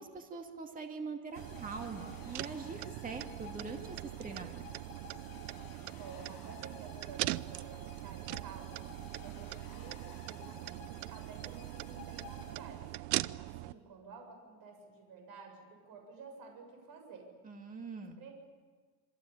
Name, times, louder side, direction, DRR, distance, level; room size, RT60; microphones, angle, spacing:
voice 1, 0.0-4.6 17.4-18.2, right 4 dB, 15° right, 4 dB, 2.3 m, -43 dB
sound 1, 1.3-13.1, left 7 dB, 45° left, 5.7 m, -55 dB
sound 2, 1.4-13.7, right 18 dB, 85° right, 0.9 m, -41 dB
voice 2, 6.0-12.9 13.4-17.3 18.2-18.3, right 4 dB, 45° right, 4 dB, 7.8 m, -52 dB
27.5 x 24.5 x 8.8 m, 1.4 s
cardioid pair, 155°, 49 cm